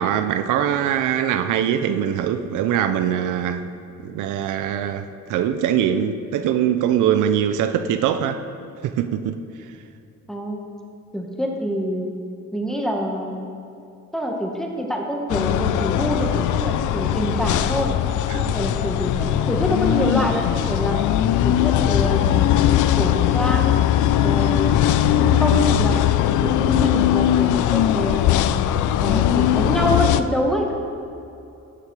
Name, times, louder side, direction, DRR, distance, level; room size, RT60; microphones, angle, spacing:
voice 1, 0.0-3.7 4.0-8.4 8.8-9.4 18.3-18.5 24.2-24.4, right 9 dB, 80° right, 10 dB, 0.6 m, -22 dB
voice 2, 10.3-10.6 11.1-12.1 12.5-13.5 14.1-17.9 18.3-21.0 21.4-22.5 22.9-23.8 24.2-24.7 25.0-26.0 26.4-28.4 29.0-30.8, equal, ahead, 1 dB, 1.5 m, -26 dB
sound 1, 15.3-30.2, left 11 dB, 80° left, 0.5 m, -19 dB
12.5 x 6.8 x 4.8 m, 2.7 s
cardioid pair, 90°, 30 cm